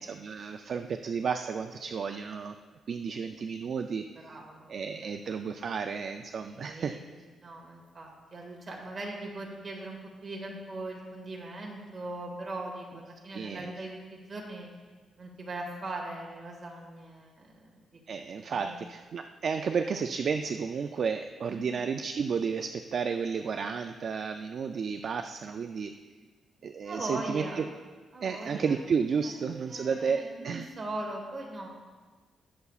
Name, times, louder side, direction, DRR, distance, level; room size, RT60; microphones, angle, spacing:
voice 1, 0.0-2.6 2.9-4.3 4.7-7.0 13.3-13.7 18.1-25.9 26.6-27.6 28.2-30.7, right 6 dB, 50° right, 6 dB, 0.3 m, -32 dB
voice 2, 4.2-4.7 5.0-5.1 6.6-7.0 7.4-14.7 15.2-18.0 18.5-18.8 21.5-21.7 26.8-27.6 28.1-28.8 29.2-29.3 29.7-31.7, right 2 dB, 30° right, -1 dB, 1.8 m, -40 dB
19.5 x 6.8 x 2.4 m, 1.4 s
wide cardioid pair, 155°, 0 cm